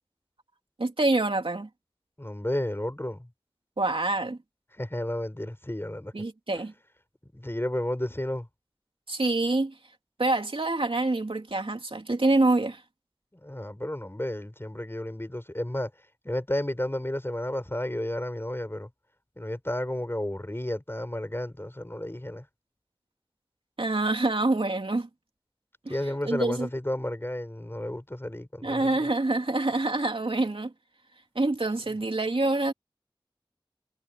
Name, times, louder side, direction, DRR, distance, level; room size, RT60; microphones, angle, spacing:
voice 1, 0.8-1.7 3.8-4.4 6.1-6.7 9.1-9.7 10.2-12.8 23.8-25.1 25.8-25.9 26.2-26.7 28.6-30.7 31.3-32.7, right 2 dB, 85° right, 3.0 m, -26 dB
voice 2, 2.2-3.3 4.8-6.1 7.3-8.5 13.4-15.9 16.2-18.9 19.4-22.4 25.9-29.1, left 1 dB, 25° left, 4.9 m, -32 dB
wide cardioid pair, 40°, 9 cm